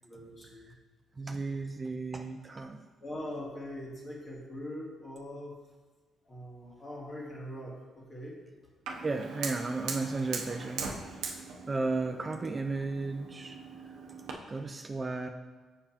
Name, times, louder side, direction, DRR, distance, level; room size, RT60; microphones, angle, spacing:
voice 1, 0.0-0.7 1.3-1.6 3.0-5.6 6.3-8.4, left 1 dB, 35° left, -3 dB, 1.8 m, -42 dB
voice 2, 1.2-2.8 9.0-10.9 11.2-11.4 11.7-13.6 14.5-15.3, right 3 dB, 30° right, 5 dB, 0.4 m, -34 dB
Fire, 8.9-14.3, right 5 dB, 90° right, 0.7 m, -40 dB
6.9 x 5.4 x 2.9 m, 1.4 s
cardioid pair, 90°, 0 cm